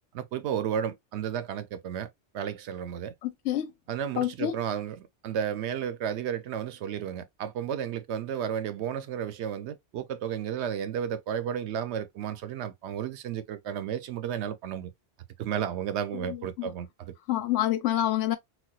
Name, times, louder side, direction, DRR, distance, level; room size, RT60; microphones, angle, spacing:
voice 1, 0.1-2.1 2.3-3.1 3.9-14.9 15.4-17.1, right 9 dB, 70° right, 0.8 m, -33 dB
voice 2, 3.2-3.7 4.2-4.6 16.6-16.7 17.3-18.4, left 12 dB, 85° left, 1.0 m, -27 dB
4.2 x 2.2 x 2.2 m
omnidirectional pair, 1.2 m